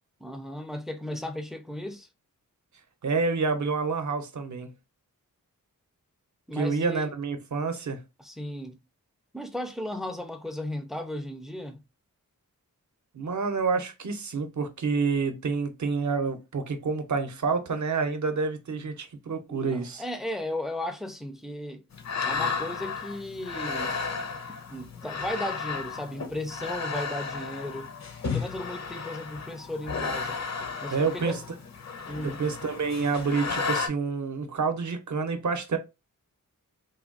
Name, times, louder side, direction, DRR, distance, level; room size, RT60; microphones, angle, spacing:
voice 1, 0.2-2.1 6.5-7.1 8.2-8.8 9.3-11.8 19.5-21.8 22.2-24.0 24.7-27.9 28.3-30.4 30.8-31.4 32.1-32.4, left 1 dB, ahead, 0.4 m, -35 dB
voice 2, 3.0-4.7 6.5-8.0 13.1-20.0 30.9-31.4 32.2-35.8, right 4 dB, 55° right, 0.6 m, -28 dB
sound 1, 21.9-33.9, left 5 dB, 50° left, 0.6 m, -33 dB
3.3 x 2.2 x 2.3 m
wide cardioid pair, 110°, 34 cm